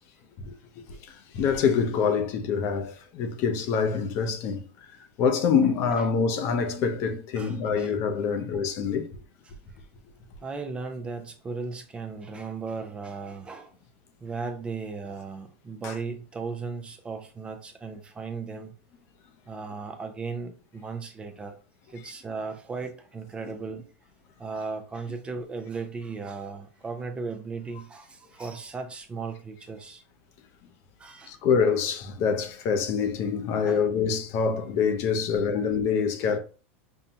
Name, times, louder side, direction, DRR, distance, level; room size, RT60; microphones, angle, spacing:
voice 1, 0.9-4.6 5.2-9.1 15.8-15.9 31.3-36.4, left 6 dB, 45° left, 0.7 m, -25 dB
voice 2, 7.4-7.9 9.5-9.6 10.4-13.7 14.2-18.7 19.5-21.5 21.9-23.9 24.4-30.0 31.0-31.4 33.6-33.8, right 4 dB, 15° right, 0.5 m, -36 dB
5.4 x 2.2 x 2.8 m
supercardioid pair, 140°, 7 cm